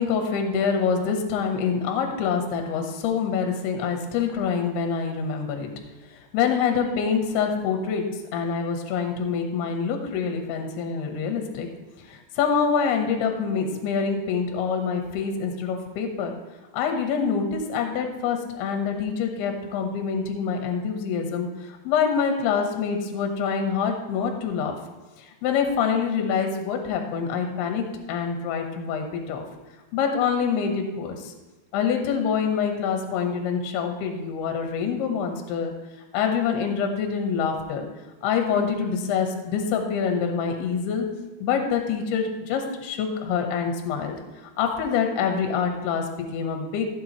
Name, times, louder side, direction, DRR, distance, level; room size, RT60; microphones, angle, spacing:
voice 1, 0.0-5.7 6.3-8.0 8.3-11.7 12.0-16.3 16.7-24.8 25.2-29.4 29.9-31.3 31.7-35.7 36.1-37.9 38.2-41.1 41.4-44.1 44.6-46.9, left 6 dB, 70° left, 4 dB, 3.0 m, -26 dB
15.0 x 7.4 x 3.1 m, 1.2 s
omnidirectional pair, 5.1 m